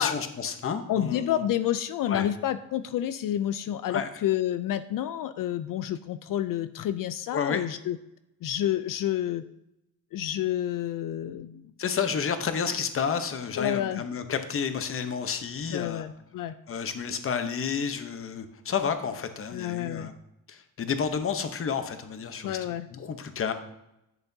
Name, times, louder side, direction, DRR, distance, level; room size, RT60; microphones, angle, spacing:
voice 1, 0.0-1.4 2.1-2.3 3.9-4.1 7.3-7.6 11.8-16.1 16.7-20.1 20.5-22.6 22.9-23.5, left 6 dB, 35° left, 9 dB, 0.8 m, -30 dB
voice 2, 0.9-8.0 8.4-9.4 10.1-11.6 13.6-14.0 15.7-16.5 19.5-20.1 22.4-22.9, left 11 dB, 65° left, 12 dB, 0.5 m, -29 dB
10.5 x 8.0 x 2.7 m, 0.85 s
cardioid pair, 130°, 36 cm